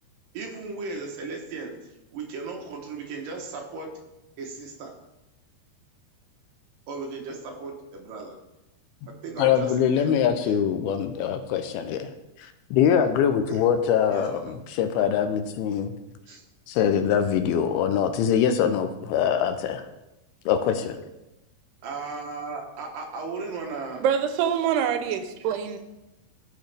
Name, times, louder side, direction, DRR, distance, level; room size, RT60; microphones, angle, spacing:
voice 1, 0.3-3.9 4.4-4.9 6.9-8.4 9.1-10.6 13.5-13.6 14.1-14.5 16.3-16.4 21.8-24.0, right 4 dB, 65° right, 2.6 m, -36 dB
voice 2, 9.4-12.1 12.4-15.9 16.7-19.8 20.5-21.0, left 8 dB, 80° left, 2.5 m, -23 dB
voice 3, 24.0-25.8, right 8 dB, 85° right, 2.8 m, -25 dB
15.5 x 6.2 x 3.4 m
omnidirectional pair, 4.6 m